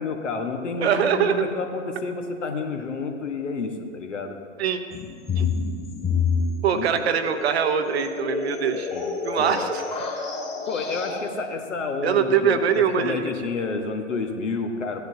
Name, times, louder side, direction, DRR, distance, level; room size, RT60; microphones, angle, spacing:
voice 1, 0.0-4.4 6.7-6.9 8.9-9.0 9.4-9.6 10.7-15.0, left 4 dB, 65° left, 4 dB, 1.4 m, -29 dB
voice 2, 0.8-1.4 4.6-4.8 5.4-5.5 6.6-8.9 9.2-9.8 12.0-13.3, right 7 dB, 55° right, 9 dB, 0.9 m, -23 dB
sound 1, 4.9-11.2, left 5 dB, 15° left, 2.1 m, -28 dB
16.5 x 10.5 x 2.8 m, 2.2 s
figure-of-eight pair, 105°, 39 cm